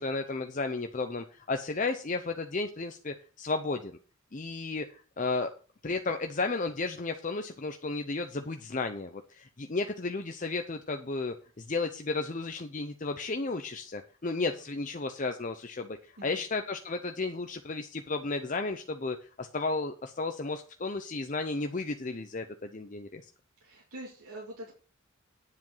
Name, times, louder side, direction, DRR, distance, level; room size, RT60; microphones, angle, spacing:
voice 1, 0.0-3.9 4.3-5.5 5.8-23.2, left 3 dB, 35° left, 6 dB, 0.7 m, -33 dB
voice 2, 23.6-24.7, right 1 dB, 85° right, -3 dB, 2.6 m, -45 dB
9.7 x 7.7 x 5.6 m, 0.39 s
head